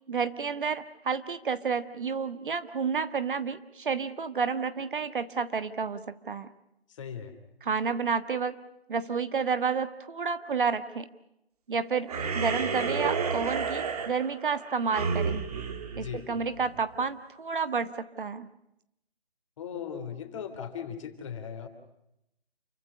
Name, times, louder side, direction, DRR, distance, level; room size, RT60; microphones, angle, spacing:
voice 1, 0.1-6.5 7.6-8.6 8.9-11.1 11.7-15.4 16.0-18.5, right 5 dB, 55° right, 12 dB, 1.5 m, -30 dB
voice 2, 6.9-7.3 15.9-16.2 19.6-21.7, left 8 dB, 30° left, 7 dB, 3.3 m, -38 dB
sound 1, 12.1-16.8, right 5 dB, 35° right, 2.6 m, -31 dB
29.0 x 15.5 x 9.7 m, 0.83 s
figure-of-eight pair, 160°, 31 cm